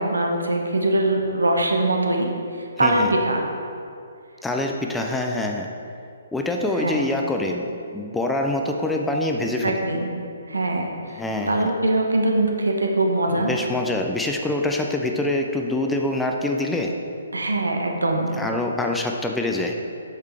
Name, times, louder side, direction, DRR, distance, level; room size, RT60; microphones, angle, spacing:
voice 1, 0.0-3.4 6.8-7.0 9.6-10.1 10.5-11.2 11.5-13.5 17.3-18.3, right 2 dB, 75° right, 1 dB, 1.1 m, -22 dB
voice 2, 2.8-3.1 4.4-5.7 6.3-9.7 11.2-11.7 13.3-16.9 18.3-19.7, left 2 dB, 5° left, 1 dB, 0.5 m, -25 dB
8.2 x 6.5 x 3.4 m, 2.4 s
figure-of-eight pair, 130°, 0 cm